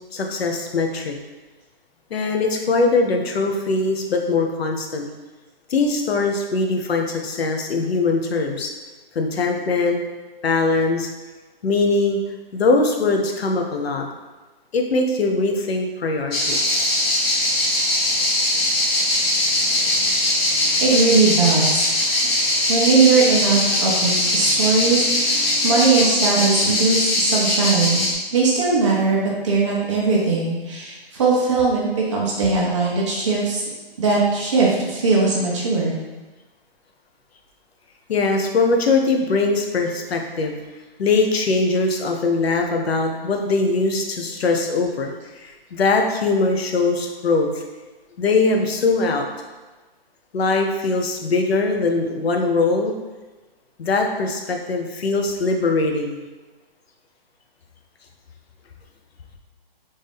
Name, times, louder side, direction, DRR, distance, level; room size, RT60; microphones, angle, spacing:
voice 1, 0.1-1.1 2.1-5.1 5.7-8.7 9.1-10.0 10.4-11.1 11.6-12.2 12.5-14.0 14.7-16.9 38.1-40.6 41.0-47.6 48.2-49.3 50.3-52.9 53.8-56.2, left 3 dB, 90° left, 3 dB, 0.8 m, -21 dB
sound 1, 16.3-28.1, left 1 dB, 75° left, 1.1 m, -21 dB
voice 2, 20.6-21.9 22.7-28.0 28.3-33.6 34.0-35.9, right 4 dB, 30° right, -4 dB, 0.8 m, -19 dB
3.5 x 2.7 x 3.5 m, 1.2 s
hypercardioid pair, 170°, 30 cm